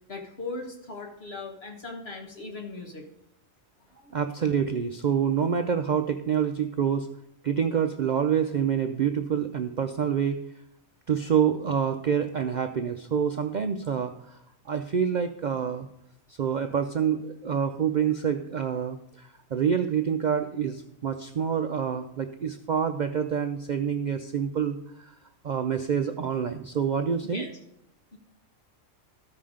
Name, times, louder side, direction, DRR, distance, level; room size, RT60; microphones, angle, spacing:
voice 1, 0.1-3.0 3.9-4.1 27.3-27.5 28.1-28.2, left 3 dB, 50° left, 2 dB, 1.7 m, -38 dB
voice 2, 4.1-7.1 7.4-10.4 11.1-14.4 14.7-15.9 16.3-25.1 25.4-27.5, right 7 dB, 75° right, 7 dB, 0.4 m, -27 dB
13.5 x 5.7 x 4.9 m, 0.79 s
omnidirectional pair, 1.4 m